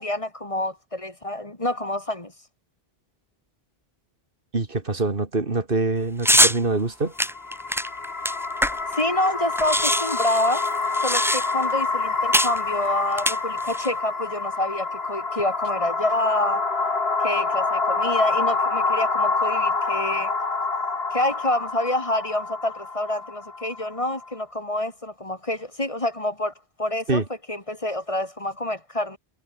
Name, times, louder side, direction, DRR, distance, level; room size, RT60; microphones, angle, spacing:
voice 1, 0.0-2.3 8.9-10.7 11.0-16.7 17.2-20.3 21.1-27.2 27.5-29.2, left 1 dB, 30° left, 2.7 m, -27 dB
voice 2, 4.5-7.1 27.1-27.2, right 3 dB, 60° right, 2.4 m, -24 dB
sound 1, 6.2-6.6 7.2-9.0 9.3-9.4 9.5-11.7 12.3-12.6 13.1-13.9, equal, ahead, 5.6 m, -22 dB
sound 2, 7.2-24.3, left 3 dB, 75° left, 2.7 m, -27 dB
omnidirectional pair, 1.0 m